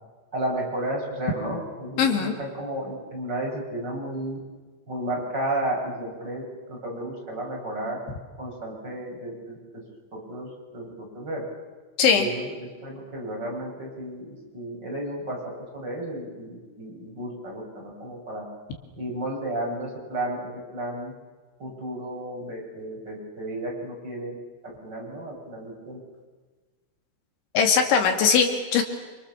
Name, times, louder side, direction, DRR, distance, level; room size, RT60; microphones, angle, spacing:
voice 1, 0.3-4.4 4.9-8.0 8.4-9.6 10.3-11.4 12.2-18.4 19.0-21.1 21.6-24.4 24.8-26.0, right 1 dB, 20° right, -2 dB, 7.8 m, -33 dB
voice 2, 2.0-2.3 12.0-12.3 27.5-28.8, left 6 dB, 75° left, 4 dB, 4.7 m, -20 dB
29.0 x 29.0 x 7.2 m, 1.3 s
omnidirectional pair, 5.4 m